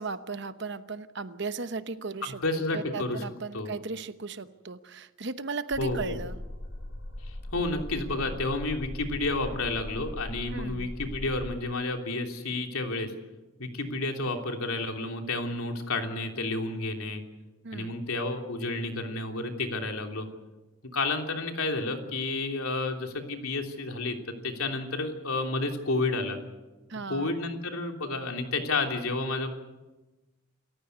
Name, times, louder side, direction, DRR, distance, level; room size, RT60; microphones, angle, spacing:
voice 1, 0.0-2.4 2.7-6.4 10.5-10.9 17.6-18.0 26.9-27.3, right 4 dB, 55° right, 11 dB, 1.0 m, -36 dB
voice 2, 2.2-3.2 3.5-3.7 5.8-6.1 7.5-13.1 13.6-17.2 17.7-20.3 20.9-24.2 24.4-26.4 27.1-29.5, left 2 dB, 85° left, 3 dB, 3.2 m, -31 dB
sound 1, 5.7-11.5, left 1 dB, 65° left, 7.1 m, -39 dB
28.0 x 15.0 x 8.2 m, 1.1 s
head